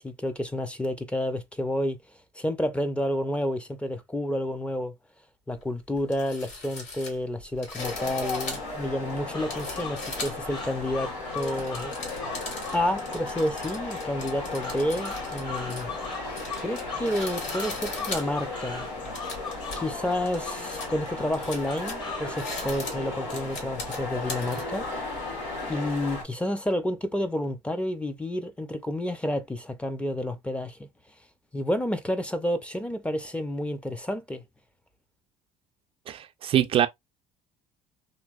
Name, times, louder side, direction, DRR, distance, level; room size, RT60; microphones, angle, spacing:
voice 1, 0.0-2.0 2.4-4.9 5.5-11.9 12.7-15.9 16.6-18.9 19.8-24.9 25.7-30.9 31.5-34.4, left 1 dB, 10° left, 0.6 m, -30 dB
sound 1, 5.6-5.7 5.9-10.6 11.1-24.6, left 3 dB, 65° left, 1.7 m, -40 dB
sound 2, 7.8-26.2, left 2 dB, 80° left, 1.6 m, -35 dB
sound 3, 9.3-22.4, left 4 dB, 35° left, 1.4 m, -41 dB
voice 2, 36.1-36.9, right 11 dB, 45° right, 0.4 m, -23 dB
3.0 x 2.9 x 2.4 m
supercardioid pair, 105°, 13 cm